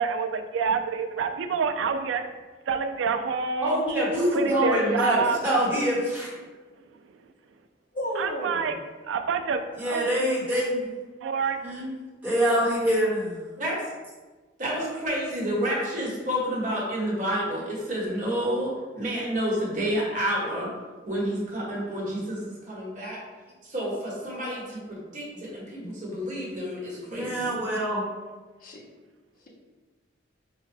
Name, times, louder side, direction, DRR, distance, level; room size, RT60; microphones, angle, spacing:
voice 1, 0.0-2.2 2.6-3.8 4.3-5.4 6.4-6.5 6.8-7.3 8.2-8.8 9.0-10.1 11.2-11.6, right 5 dB, 80° right, 8 dB, 0.3 m, -28 dB
voice 2, 3.6-6.3 9.8-10.9 11.6-11.9 12.2-13.4 25.8-25.9 27.1-28.0, equal, 10° right, -8 dB, 1.0 m, -25 dB
voice 3, 5.1-5.7 8.0-8.8 28.6-28.8 29.4-29.5, equal, 45° left, -2 dB, 0.7 m, -34 dB
voice 4, 14.6-20.7 21.0-23.2 23.6-27.5, equal, 40° right, -5 dB, 1.1 m, -29 dB
4.7 x 2.1 x 3.2 m, 1.3 s
head